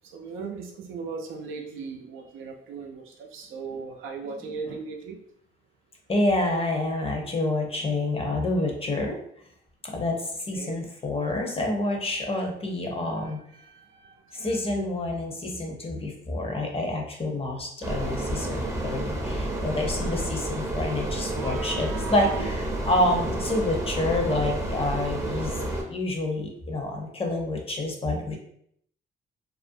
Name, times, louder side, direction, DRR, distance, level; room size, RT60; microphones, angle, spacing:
voice 1, 0.1-3.0 3.3-5.2 10.5-10.8 13.2-14.1 14.4-14.9 20.6-20.9 21.3-22.5, right 5 dB, 85° right, 2 dB, 0.5 m, -38 dB
voice 2, 6.1-9.2 9.9-10.2 10.4-13.4 14.3-25.5 25.9-28.4, left 1 dB, 30° left, 1 dB, 0.6 m, -28 dB
sound 1, 17.8-25.8, right 1 dB, 15° right, 0.6 m, -30 dB
2.4 x 2.1 x 2.6 m, 0.67 s
cardioid pair, 90°, 20 cm